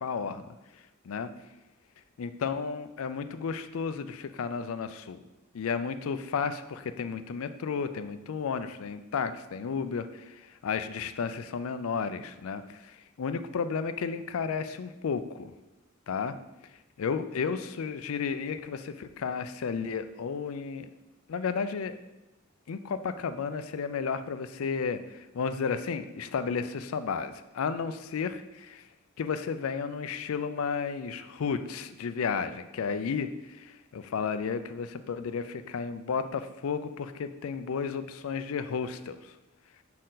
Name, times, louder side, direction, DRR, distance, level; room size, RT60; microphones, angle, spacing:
voice 1, 0.0-0.5 1.1-1.3 2.2-5.2 5.5-10.3 10.6-15.5 16.1-16.3 17.0-20.9 21.3-22.0 22.7-28.8 29.2-39.2, left 5 dB, 90° left, 11 dB, 0.4 m, -33 dB
6.2 x 4.4 x 3.9 m, 1.0 s
head